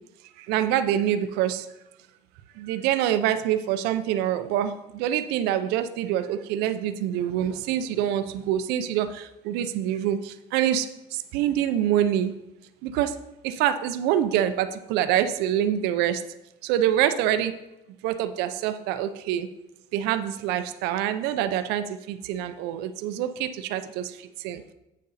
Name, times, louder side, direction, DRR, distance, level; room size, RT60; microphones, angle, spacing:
voice 1, 0.4-1.7 2.5-12.3 12.8-13.1 13.4-16.2 16.6-17.5 18.0-19.5 19.9-24.6, right 11 dB, 75° right, 10 dB, 0.5 m, -26 dB
8.3 x 6.5 x 4.1 m, 0.95 s
cardioid pair, 160°, 17 cm